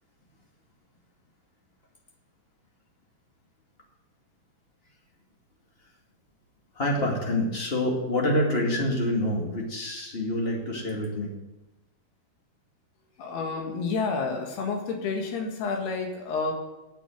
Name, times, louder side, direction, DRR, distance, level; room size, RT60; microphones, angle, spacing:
voice 1, 6.7-11.3, left 1 dB, 20° left, -1 dB, 1.6 m, -27 dB
voice 2, 13.2-16.5, left 4 dB, 85° left, 2 dB, 3.8 m, -29 dB
9.1 x 8.3 x 9.0 m, 1.0 s
omnidirectional pair, 4.5 m